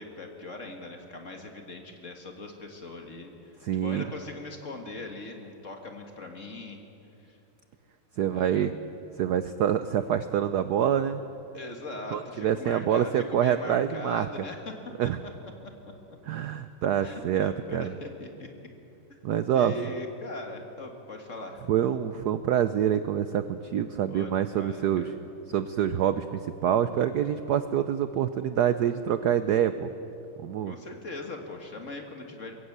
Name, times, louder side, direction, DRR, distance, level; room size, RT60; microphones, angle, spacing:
voice 1, 0.0-6.8 7.3-7.4 8.3-8.7 11.5-14.7 17.0-18.5 19.5-21.6 24.1-25.1 30.7-32.5, left 2 dB, 35° left, 3 dB, 2.0 m, -40 dB
voice 2, 3.6-4.0 8.2-8.7 9.2-11.2 12.1-14.3 15.0-15.2 16.3-17.9 19.2-19.7 21.7-25.0 25.5-29.9 30.4-30.7, right 9 dB, 70° right, 11 dB, 0.9 m, -26 dB
22.0 x 16.0 x 8.0 m, 2.8 s
omnidirectional pair, 2.3 m